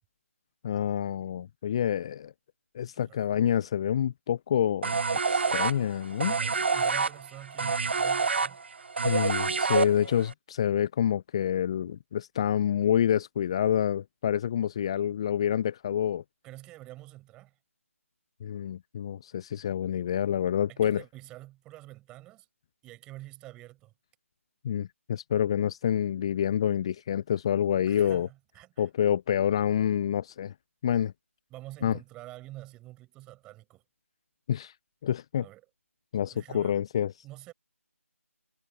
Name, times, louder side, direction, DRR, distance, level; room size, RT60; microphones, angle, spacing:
voice 1, 0.6-2.3 2.7-5.0 5.3-6.4 9.0-16.2 18.4-21.0 24.6-28.3 28.8-30.5 30.8-31.1 31.8-31.9 34.5-34.7 35.0-35.5 36.1-37.1, left 9 dB, 20° left, 0.6 m, -27 dB
voice 2, 2.9-3.3 6.3-8.6 16.4-17.6 20.7-22.5 22.8-23.9 27.9-28.9 31.5-33.8 35.4-35.6 36.3-36.8 37.2-37.5, right 17 dB, 10° right, 7.6 m, -47 dB
sound 1, 4.8-10.3, right 4 dB, 50° right, 0.8 m, -27 dB
figure-of-eight pair, 155°, 8 cm